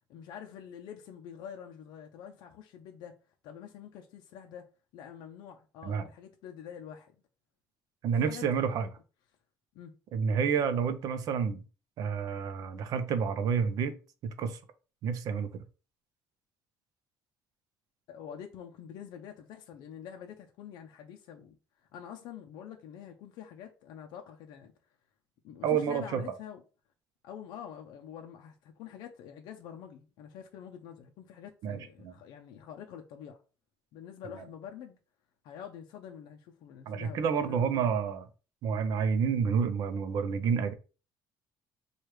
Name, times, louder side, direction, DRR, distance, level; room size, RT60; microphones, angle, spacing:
voice 1, 0.1-3.2 3.4-7.1 8.1-8.9 9.7-9.9 18.1-21.6 21.9-24.7 25.4-26.6 27.2-33.4 33.9-35.0 35.4-37.9, left 9 dB, 65° left, 0.5 m, -46 dB
voice 2, 8.0-8.9 10.1-11.6 12.0-14.0 14.2-14.6 15.0-15.6 25.6-26.2 31.6-32.1 36.9-38.2 38.6-40.7, right 6 dB, 55° right, 0.5 m, -29 dB
4.6 x 2.3 x 3.1 m
cardioid pair, 160°, 8 cm